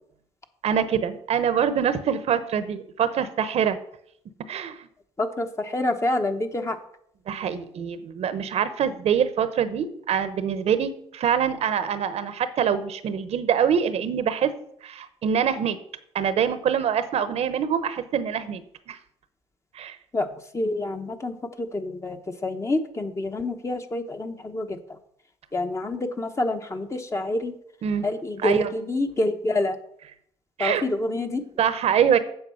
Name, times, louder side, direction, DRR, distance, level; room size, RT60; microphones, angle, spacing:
voice 1, 0.6-3.8 4.5-4.9 7.3-14.5 14.8-15.8 16.1-18.6 18.9-19.0 19.7-20.0 27.8-28.1 28.4-28.7 30.6-30.8 31.6-32.2, right 8 dB, 60° right, 12 dB, 0.9 m, -24 dB
voice 2, 5.2-6.8 20.1-20.3 20.5-24.8 25.5-27.5 28.0-29.8 30.6-31.4, left 2 dB, 25° left, 6 dB, 1.1 m, -27 dB
7.9 x 7.1 x 5.7 m, 0.68 s
cardioid pair, 85°, 12 cm